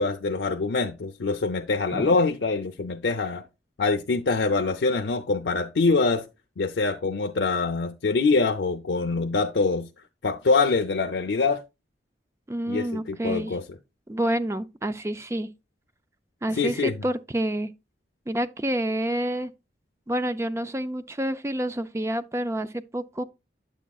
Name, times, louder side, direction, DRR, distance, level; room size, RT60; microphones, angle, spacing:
voice 1, 0.0-3.4 3.8-6.2 6.6-9.9 10.2-11.6 12.7-13.6 16.6-17.0, left 3 dB, 90° left, 0.6 m, -24 dB
voice 2, 12.5-13.6 14.1-15.5 16.4-17.7 18.3-19.5 20.1-23.2, right 1 dB, 15° right, 0.4 m, -28 dB
9.0 x 7.2 x 2.3 m
head